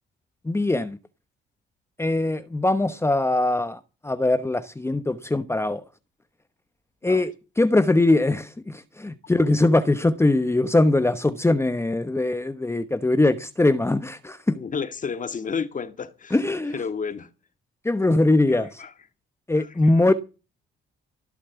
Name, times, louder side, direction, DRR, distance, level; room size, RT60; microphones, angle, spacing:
voice 1, 0.4-1.0 2.0-5.8 7.0-14.6 16.3-16.7 17.8-18.8 19.5-20.1, left 2 dB, 15° left, 1.0 m, -21 dB
voice 2, 14.5-16.4 16.7-17.3 18.5-18.9 19.6-20.0, left 6 dB, 40° left, 1.9 m, -32 dB
17.0 x 7.2 x 8.1 m
cardioid pair, 90°, 20 cm